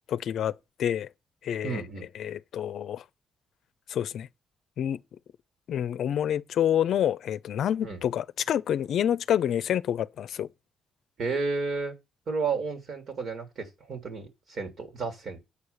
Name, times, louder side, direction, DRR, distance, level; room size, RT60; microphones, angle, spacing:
voice 1, 0.1-0.5 0.8-1.1 1.4-1.8 2.1-3.0 3.9-4.3 4.8-5.0 5.7-10.5, left 10 dB, 70° left, 0.5 m, -27 dB
voice 2, 1.6-2.1 7.8-8.0 11.2-11.9 12.3-15.4, right 4 dB, 60° right, 3.3 m, -32 dB
8.4 x 4.9 x 7.1 m
cardioid pair, 90°, 0 cm